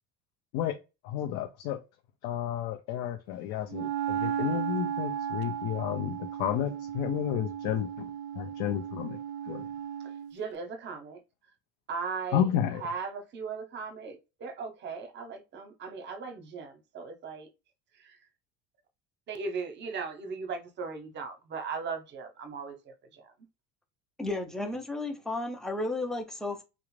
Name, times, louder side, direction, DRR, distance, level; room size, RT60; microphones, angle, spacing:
voice 1, 1.0-1.8 2.2-9.2 9.5-9.7 12.3-12.9, left 10 dB, 70° left, 0.5 m, -31 dB
Wind instrument woodwind instrument, 3.7-10.4, right 8 dB, 65° right, 0.4 m, -35 dB
voice 2, 10.3-11.2 11.9-12.4 12.8-17.5 18.0-18.2 19.3-23.3, right 5 dB, 35° right, 0.7 m, -38 dB
voice 3, 24.2-26.6, left 2 dB, ahead, 0.5 m, -33 dB
2.4 x 2.0 x 3.1 m
cardioid pair, 125°, 31 cm